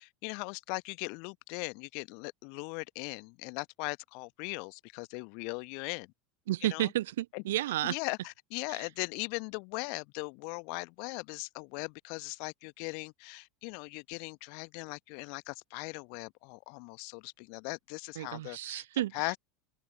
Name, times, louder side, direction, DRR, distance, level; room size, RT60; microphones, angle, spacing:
voice 1, 0.0-6.1 6.7-6.9 7.3-7.4 7.8-18.8 19.1-19.4, left 37 dB, 50° left, 1.1 m, -39 dB
voice 2, 6.5-8.0 8.7-8.9 18.2-19.3, right 14 dB, 60° right, 0.4 m, -32 dB
figure-of-eight pair, 80°, 0 cm